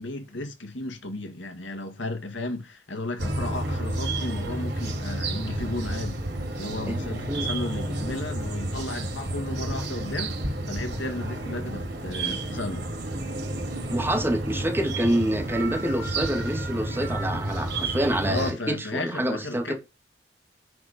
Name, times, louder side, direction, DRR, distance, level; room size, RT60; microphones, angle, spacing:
voice 1, 0.0-6.2 6.6-10.4 10.7-12.9 18.2-19.7, left 2 dB, 85° left, 2.0 m, -34 dB
sound 1, 3.2-18.5, right 2 dB, 65° right, 3.8 m, -31 dB
voice 2, 6.9-7.5 13.9-19.7, right 1 dB, 15° right, 2.1 m, -27 dB
10.5 x 4.3 x 5.1 m
head